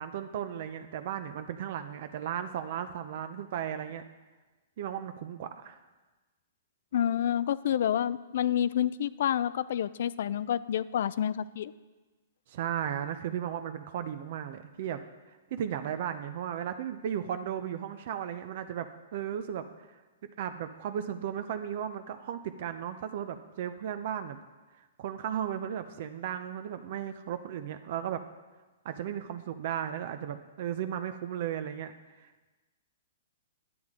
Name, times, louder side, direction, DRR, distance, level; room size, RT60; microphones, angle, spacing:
voice 1, 0.0-4.0 4.8-5.8 12.5-15.0 15.5-18.9 19.1-19.9 20.4-24.4 24.8-28.2 28.8-31.9 32.2-32.3, right 9 dB, 55° right, 9 dB, 0.5 m, -35 dB
voice 2, 6.9-11.7, left 10 dB, 65° left, 18 dB, 0.3 m, -28 dB
9.4 x 8.8 x 3.6 m, 1.2 s
hypercardioid pair, 140°, 0 cm